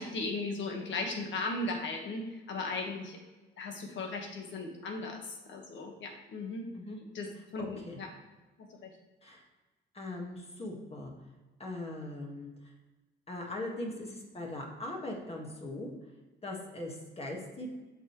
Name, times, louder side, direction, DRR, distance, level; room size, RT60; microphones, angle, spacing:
voice 1, 0.0-3.2 3.6-6.6 7.1-8.1 8.8-8.9, left 3 dB, 70° left, 2 dB, 1.6 m, -37 dB
voice 2, 7.6-8.0 9.2-9.4 9.9-11.1 11.6-12.5 13.3-15.9 16.4-17.7, left 1 dB, 30° left, -1 dB, 1.8 m, -40 dB
7.9 x 6.4 x 3.2 m, 1.2 s
cardioid pair, 90°, 20 cm